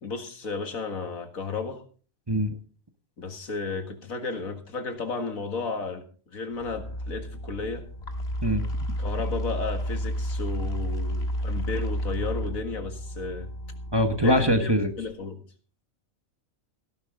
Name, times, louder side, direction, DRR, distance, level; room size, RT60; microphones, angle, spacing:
voice 1, 0.0-1.8 3.2-6.0 6.3-7.9 9.0-13.5 14.2-15.4, left 4 dB, 80° left, 2.3 m, -33 dB
sound 1, 6.5-15.1, equal, 50° left, 1.8 m, -32 dB
voice 2, 8.4-9.0 13.9-14.9, equal, 20° right, 1.1 m, -23 dB
17.5 x 11.0 x 3.8 m
omnidirectional pair, 1.4 m